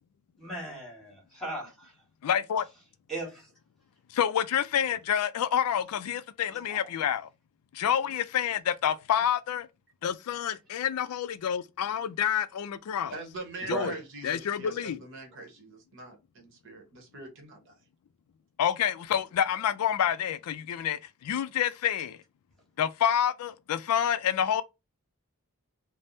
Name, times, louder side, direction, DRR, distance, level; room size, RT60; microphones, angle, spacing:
voice 1, 0.4-1.9 3.1-3.5 6.7-6.8 13.7-14.0, right 2 dB, ahead, 1.4 m, -36 dB
voice 2, 2.2-2.6 4.1-7.3 7.7-9.7 10.0-13.1 13.7-13.9 14.2-15.0 18.6-22.2 22.8-24.6, left 9 dB, 85° left, 0.3 m, -28 dB
voice 3, 13.1-17.8, right 2 dB, 55° right, 1.1 m, -43 dB
3.3 x 2.0 x 2.6 m
head